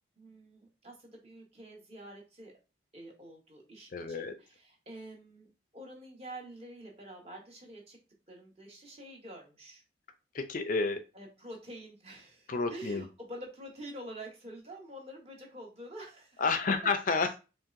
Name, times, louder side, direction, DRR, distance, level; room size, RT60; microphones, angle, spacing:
voice 1, 0.2-2.5 2.9-8.0 8.3-9.8 11.1-16.4, right 1 dB, 30° right, 0 dB, 1.2 m, -47 dB
voice 2, 3.9-4.3 10.3-11.0 12.5-13.0 16.4-17.4, left 4 dB, 45° left, 8 dB, 0.4 m, -30 dB
4.4 x 3.2 x 2.5 m, 0.30 s
head